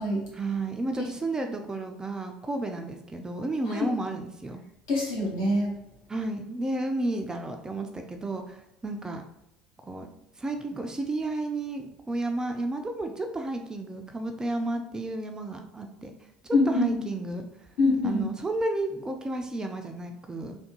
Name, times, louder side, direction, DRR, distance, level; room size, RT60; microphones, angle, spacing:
voice 1, 0.3-4.6 6.1-9.2 9.8-16.1 16.4-17.5 18.0-20.6, right 2 dB, 15° right, 4 dB, 0.4 m, -32 dB
voice 2, 4.9-5.7 16.5-17.0 17.8-18.3, left 2 dB, 60° left, -4 dB, 1.4 m, -25 dB
3.4 x 2.2 x 2.9 m, 0.86 s
figure-of-eight pair, 65°, 4 cm